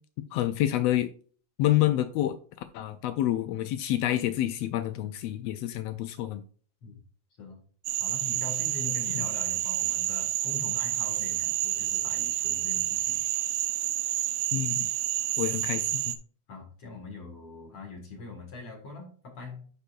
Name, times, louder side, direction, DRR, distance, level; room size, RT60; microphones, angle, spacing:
voice 1, 0.3-1.1 1.6-2.4 2.7-6.4 9.1-9.3 14.5-14.9 15.4-16.2, left 13 dB, 90° left, 11 dB, 1.4 m, -28 dB
Frog, 7.9-16.2, right 14 dB, 80° right, 2.0 m, -29 dB
voice 2, 8.0-13.2 16.5-19.7, left 4 dB, 50° left, 1 dB, 2.5 m, -42 dB
10.0 x 5.5 x 2.4 m, 0.42 s
omnidirectional pair, 3.4 m